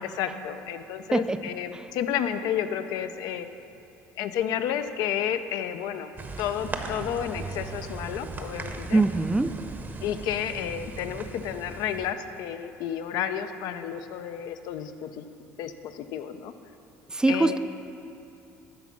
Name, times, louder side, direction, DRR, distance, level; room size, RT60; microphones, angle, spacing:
voice 1, 0.0-3.5 4.2-6.1 6.4-9.0 10.0-15.3 15.6-16.5 17.3-17.6, left 9 dB, 75° left, 9 dB, 0.5 m, -31 dB
sound 1, 6.2-12.1, right 3 dB, 30° right, 0.8 m, -38 dB
voice 2, 8.9-9.6 17.1-17.6, right 2 dB, 10° right, 11 dB, 0.4 m, -23 dB
10.5 x 4.0 x 7.1 m, 2.8 s
supercardioid pair, 85°, 7 cm